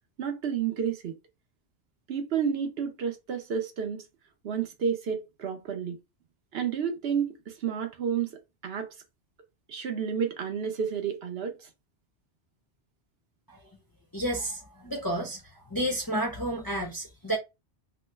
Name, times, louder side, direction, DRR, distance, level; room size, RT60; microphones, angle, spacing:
voice 1, 0.2-1.1 2.1-4.0 4.4-6.0 6.5-8.3 8.6-8.9 9.7-11.7, right 7 dB, 65° right, 0.8 m, -30 dB
voice 2, 14.1-15.4 15.7-17.4, right 1 dB, 25° left, 0.5 m, -31 dB
3.0 x 2.1 x 3.2 m
omnidirectional pair, 1.2 m